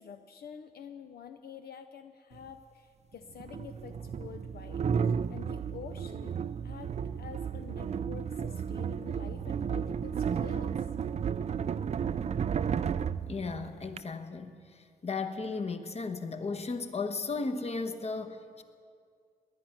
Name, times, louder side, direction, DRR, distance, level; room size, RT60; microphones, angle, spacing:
voice 1, 0.0-6.4 6.6-10.9, left 7 dB, 70° left, 7 dB, 0.6 m, -48 dB
sound 1, 2.3-2.4 3.4-14.0, right 7 dB, 45° right, 0.4 m, -33 dB
voice 2, 13.3-18.6, left 4 dB, 40° left, 8 dB, 1.1 m, -35 dB
19.0 x 10.0 x 5.8 m, 2.3 s
cardioid pair, 85°, 16 cm